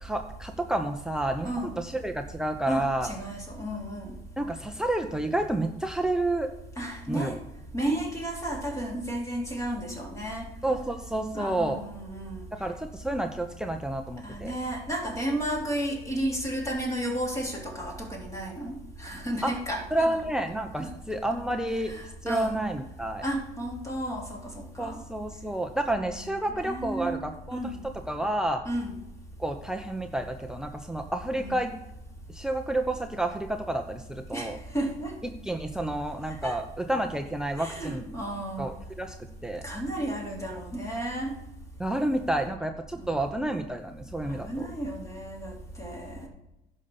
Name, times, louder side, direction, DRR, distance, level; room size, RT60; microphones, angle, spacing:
voice 1, 0.0-1.5 1.8-3.1 4.4-6.5 7.1-7.4 10.6-11.8 12.5-14.5 19.4-19.5 19.9-21.9 22.2-23.2 24.8-27.6 28.1-28.6 29.4-31.7 32.3-34.6 35.4-38.1 38.6-39.2 39.4-39.6 41.8-44.7, right 1 dB, 5° right, 6 dB, 0.8 m, -30 dB
voice 2, 2.7-4.1 6.8-7.3 7.7-10.4 11.3-12.5 14.2-20.2 20.8-20.9 21.8-22.6 23.2-25.0 26.1-27.2 27.5-27.7 28.6-28.9 31.4-31.6 34.3-35.1 36.4-36.6 37.6-38.7 39.6-41.3 42.9-43.2 44.2-46.3, right 1 dB, 20° left, -1 dB, 3.4 m, -33 dB
11.0 x 5.4 x 7.0 m, 0.90 s
cardioid pair, 110°, 17 cm